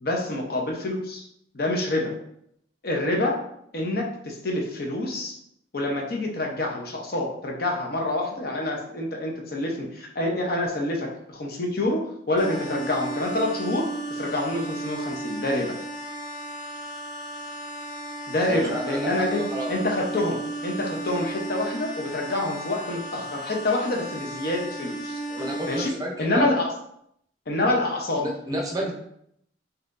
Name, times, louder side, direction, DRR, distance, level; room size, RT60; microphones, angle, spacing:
voice 1, 0.0-1.2 1.5-2.1 2.8-3.4 3.7-5.3 5.7-13.9 14.2-15.8 18.3-25.2 25.7-26.7 27.5-28.2 28.8-28.9, left 1 dB, 55° left, 0 dB, 0.8 m, -27 dB
sound 1, 12.4-25.9, right 2 dB, 25° left, 0.8 m, -34 dB
voice 2, 18.5-19.8 25.3-26.5 28.2-28.9, equal, 20° right, 0 dB, 0.6 m, -31 dB
5.6 x 2.8 x 2.6 m, 0.73 s
head